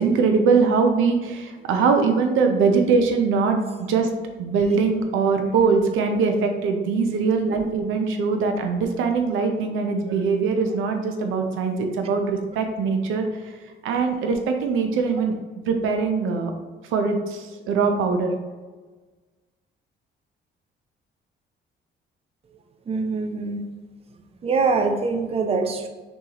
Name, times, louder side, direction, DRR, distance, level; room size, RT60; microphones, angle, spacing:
voice 1, 0.0-3.6 3.9-4.1 4.4-13.3 13.8-15.3 15.7-16.5 16.9-18.3, right 5 dB, 85° right, 4 dB, 0.6 m, -22 dB
voice 2, 22.9-23.6 24.4-25.9, right 4 dB, 30° right, 5 dB, 0.5 m, -23 dB
6.1 x 2.4 x 2.9 m, 1.3 s
cardioid pair, 90°, 20 cm